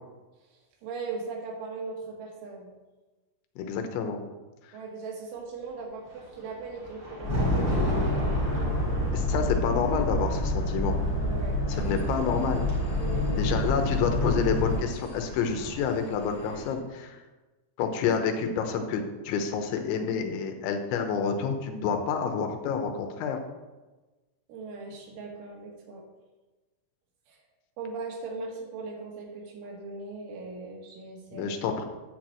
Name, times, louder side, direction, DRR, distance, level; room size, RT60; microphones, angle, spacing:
voice 1, 0.8-2.7 4.7-8.4 11.2-11.8 13.0-13.3 24.5-26.0 27.3-27.4 27.8-31.6, right 4 dB, 85° right, 0 dB, 4.1 m, -39 dB
voice 2, 3.6-4.2 9.1-11.0 11.7-12.7 13.4-17.2 17.8-23.4 31.3-31.9, left 6 dB, 80° left, 5 dB, 3.2 m, -28 dB
Thunder, 6.1-13.3 14.3-16.1, equal, 40° right, 4.0 m, -34 dB
Boat Water vehicle, 7.2-14.8, left 1 dB, 25° left, 2.8 m, -28 dB
sound 1, 11.7-16.7, equal, 40° left, 3.1 m, -44 dB
9.8 x 4.5 x 7.6 m, 1.2 s
omnidirectional pair, 5.4 m